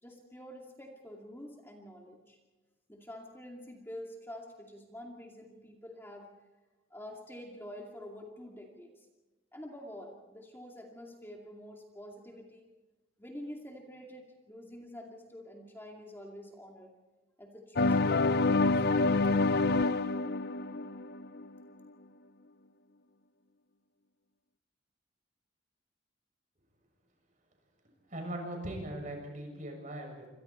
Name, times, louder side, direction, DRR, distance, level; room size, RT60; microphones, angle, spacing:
voice 1, 0.0-2.4 2.9-6.3 6.9-9.1 9.5-12.7 13.2-16.9 17.4-19.0, left 1 dB, 10° left, 0 dB, 2.4 m, -47 dB
sound 1, 17.8-21.6, left 3 dB, 55° left, 0.6 m, -27 dB
voice 2, 28.1-30.3, right 1 dB, 45° right, 2 dB, 7.1 m, -39 dB
28.0 x 26.5 x 4.4 m, 1.2 s
head